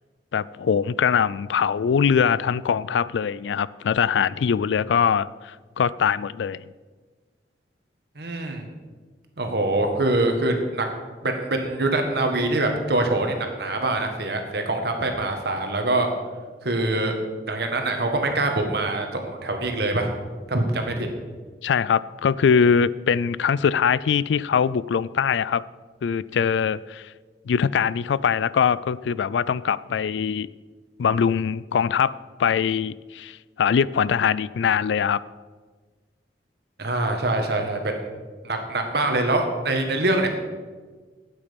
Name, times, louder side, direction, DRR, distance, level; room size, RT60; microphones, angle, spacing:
voice 1, 0.3-6.6 21.6-25.6 26.0-27.1 27.5-30.5 31.0-32.1 32.4-35.2, left 7 dB, 90° left, 19 dB, 0.3 m, -22 dB
voice 2, 8.2-8.6 9.4-10.9 11.2-16.1 16.6-17.2 17.5-20.1 20.5-21.1 36.8-37.9 38.4-40.3, right 2 dB, 65° right, 4 dB, 1.7 m, -24 dB
12.5 x 8.9 x 5.3 m, 1.4 s
head